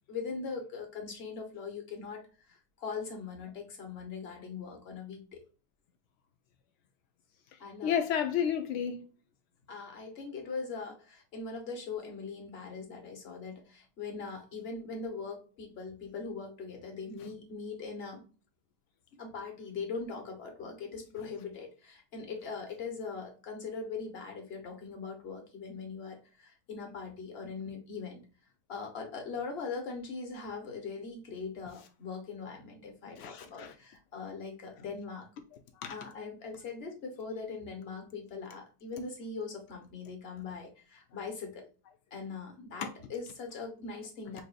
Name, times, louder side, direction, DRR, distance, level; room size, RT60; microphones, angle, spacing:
voice 1, 0.1-5.4 7.6-8.0 9.7-18.3 19.2-28.2 28.7-35.3 35.9-41.7 42.1-44.4, left 4 dB, 40° left, 1.2 m, -41 dB
voice 2, 7.8-9.1 33.2-33.7 35.8-35.9 42.8-42.9, left 8 dB, 80° left, 0.6 m, -31 dB
5.5 x 2.6 x 2.4 m
omnidirectional pair, 1.9 m